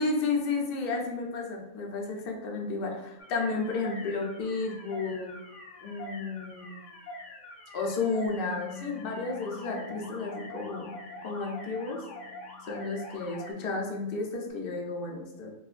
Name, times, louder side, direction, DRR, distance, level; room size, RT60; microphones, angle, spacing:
voice 1, 0.0-5.4 5.8-6.8 7.7-10.9 11.2-12.0 12.7-15.5, left 3 dB, 55° left, 0 dB, 0.8 m, -32 dB
sound 1, 3.2-13.5, left 1 dB, 75° left, 1.0 m, -45 dB
Bass guitar, 8.3-14.5, left 12 dB, 65° right, 0.8 m, -51 dB
4.8 x 2.1 x 2.4 m, 1.0 s
omnidirectional pair, 1.3 m